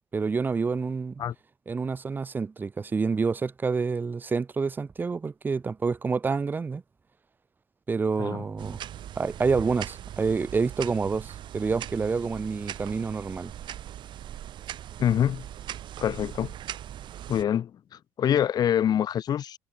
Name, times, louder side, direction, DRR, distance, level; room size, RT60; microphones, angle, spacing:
voice 1, 0.1-1.2 1.7-6.8 7.9-8.8 9.1-13.5, right 4 dB, 15° right, 1.6 m, -28 dB
sound 1, 8.6-17.4, right 11 dB, 45° right, 2.7 m, -40 dB
voice 2, 15.0-15.4 16.0-16.6 17.3-17.7 18.2-19.6, left 9 dB, 35° left, 1.9 m, -25 dB
cardioid pair, 180°, 11 cm